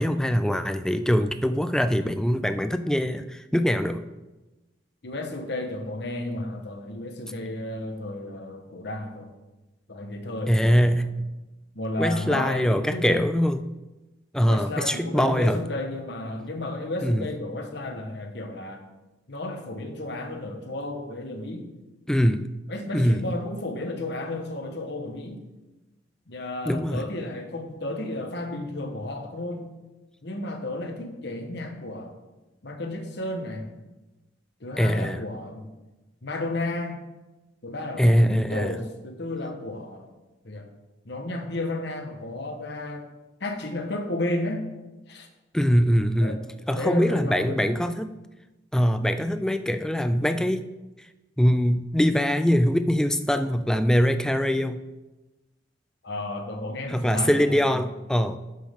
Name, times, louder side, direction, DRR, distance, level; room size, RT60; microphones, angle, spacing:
voice 1, 0.0-4.0 10.5-11.3 12.0-13.6 14.3-15.6 17.0-17.3 22.1-22.4 22.9-23.2 26.7-27.1 34.8-35.2 38.0-38.8 45.5-46.4 46.7-48.1 48.7-50.7 51.4-54.8 56.9-58.4, equal, 5° left, 10 dB, 0.3 m, -23 dB
voice 2, 5.0-9.3 9.9-11.1 11.7-13.2 14.4-18.8 19.3-21.7 22.7-25.4 26.3-29.7 30.2-32.2 32.6-33.7 34.6-35.7 36.2-37.0 37.6-40.1 40.4-40.7 41.0-43.0 43.4-44.7 45.1-45.3 46.2-46.4 46.7-47.7 56.0-57.8, left 2 dB, 60° left, 5 dB, 1.2 m, -33 dB
11.0 x 7.4 x 3.6 m, 1.1 s
head